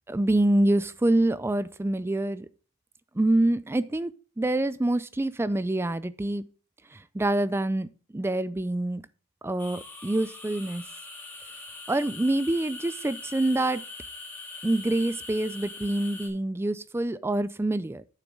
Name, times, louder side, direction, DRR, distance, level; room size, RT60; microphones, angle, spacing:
voice 1, 0.1-2.5 3.2-4.1 4.4-6.4 7.1-7.9 8.1-9.0 9.4-10.8 11.9-13.8 14.6-18.0, right 1 dB, 10° right, 0.3 m, -26 dB
sound 1, 9.6-16.3, left 2 dB, 10° left, 1.8 m, -42 dB
9.2 x 7.0 x 3.9 m
head